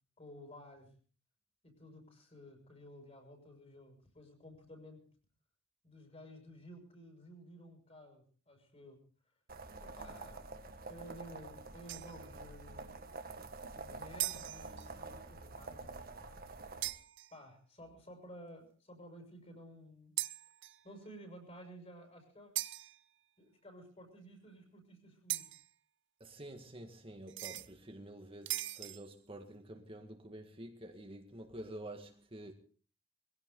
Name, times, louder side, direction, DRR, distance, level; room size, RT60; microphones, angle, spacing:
voice 1, 0.2-0.9 1.6-5.0 5.8-9.0 9.8-10.6 10.9-13.1 13.8-16.8 17.3-20.1 20.8-22.5 23.4-25.5, equal, 30° left, 6.2 m, -54 dB
sound 1, 9.5-16.9, right 3 dB, 50° right, 1.7 m, -48 dB
sound 2, 11.9-12.3 14.2-14.9 16.8-17.4 20.2-20.9 22.5-23.0 25.3-25.7 27.3-27.7 28.5-29.1, right 15 dB, 65° right, 0.8 m, -40 dB
voice 2, 26.2-32.5, right 1 dB, 30° right, 1.9 m, -49 dB
22.0 x 16.5 x 3.9 m
head